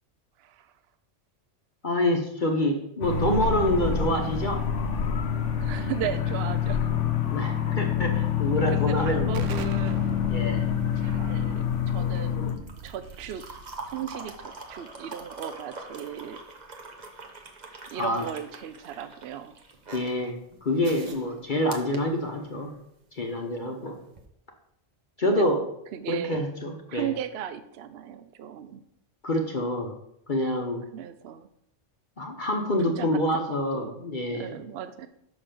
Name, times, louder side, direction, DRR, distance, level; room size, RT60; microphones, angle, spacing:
voice 1, 0.4-0.7 5.6-7.0 7.4-7.7 8.7-10.2 10.9-12.6 12.8-13.5 13.9-16.4 17.9-19.6 23.6-24.1 25.2-25.5 25.9-26.4 26.9-28.8 30.9-31.5 33.0-34.0 34.3-35.1, right 10 dB, 65° right, 11 dB, 0.7 m, -37 dB
voice 2, 1.8-4.6 7.3-9.5 10.3-10.6 17.9-18.2 19.9-22.8 23.1-24.0 25.2-25.6 26.1-27.1 29.2-29.9 30.3-30.9 32.2-34.6, left 1 dB, 45° left, 2 dB, 1.0 m, -27 dB
sound 1, 3.0-12.5, left 8 dB, 75° left, 1.1 m, -27 dB
Explosion, 9.3-14.8, right 6 dB, 80° right, 1.0 m, -40 dB
sound 2, 10.5-22.8 24.1-24.2, right 3 dB, 40° right, 1.0 m, -44 dB
6.0 x 5.7 x 6.7 m, 0.76 s
omnidirectional pair, 1.3 m